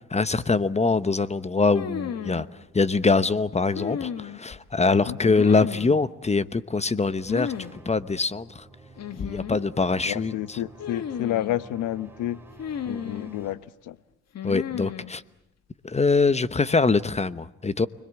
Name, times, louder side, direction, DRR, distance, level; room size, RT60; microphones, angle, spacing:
voice 1, 0.1-2.5 2.7-8.6 9.2-10.6 14.4-15.2 15.8-17.9, left 4 dB, 20° left, 1.0 m, -23 dB
sound 1, 1.7-2.4 3.7-4.6 5.2-6.0 7.2-7.7 8.0-8.1 9.0-9.7 10.8-11.6 12.6-13.4 14.3-15.1, left 8 dB, 60° left, 1.9 m, -33 dB
sound 2, 7.3-13.5, right 3 dB, 5° right, 4.4 m, -50 dB
voice 2, 10.1-12.4 12.9-13.6 13.9-14.0, left 13 dB, 85° left, 1.0 m, -30 dB
29.5 x 21.5 x 8.3 m
cardioid pair, 90°, 30 cm